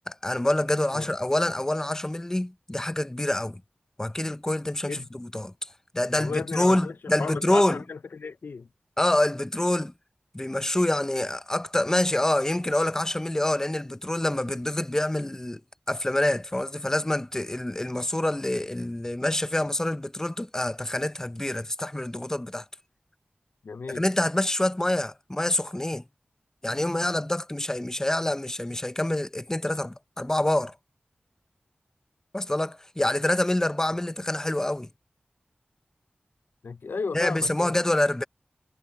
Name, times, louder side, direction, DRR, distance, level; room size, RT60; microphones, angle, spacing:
voice 1, 0.1-3.6 4.0-5.7 5.9-7.8 9.0-9.9 10.3-15.6 15.9-22.6 23.9-26.0 26.6-30.8 32.3-34.9 37.1-38.2, left 1 dB, 15° left, 0.6 m, -26 dB
voice 2, 6.2-6.9 7.2-8.7 23.6-24.0 36.6-37.7, left 4 dB, 80° left, 0.4 m, -34 dB
wide cardioid pair, 80°, 3 cm